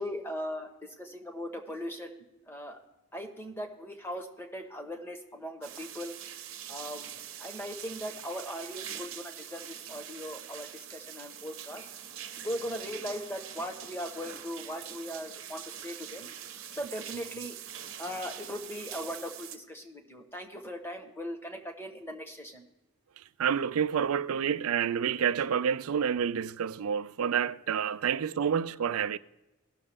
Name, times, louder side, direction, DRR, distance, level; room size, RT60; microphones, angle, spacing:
voice 1, 0.0-2.8 3.1-6.1 6.7-7.1 7.4-11.9 12.4-16.3 16.7-17.6 18.0-22.7, equal, 10° left, 1.1 m, -39 dB
sound 1, 5.6-19.6, right 9 dB, 70° right, 1.0 m, -44 dB
voice 2, 23.4-29.2, right 7 dB, 85° right, 0.4 m, -28 dB
18.0 x 6.6 x 3.5 m
head